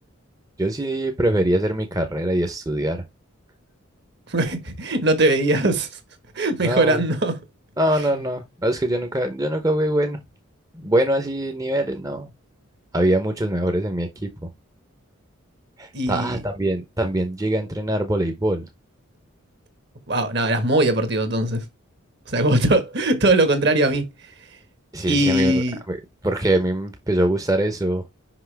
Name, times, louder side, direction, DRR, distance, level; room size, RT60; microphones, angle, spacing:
voice 1, 0.6-3.0 6.6-7.0 7.8-10.2 10.8-12.3 12.9-14.1 15.8-18.6 24.9-26.0 26.2-28.0, right 1 dB, 15° right, 0.8 m, -23 dB
voice 2, 4.3-5.9 6.3-7.4 15.9-16.4 20.1-21.6 22.3-24.0 25.1-25.8, right 1 dB, 50° right, 1.5 m, -20 dB
5.8 x 5.4 x 3.4 m
head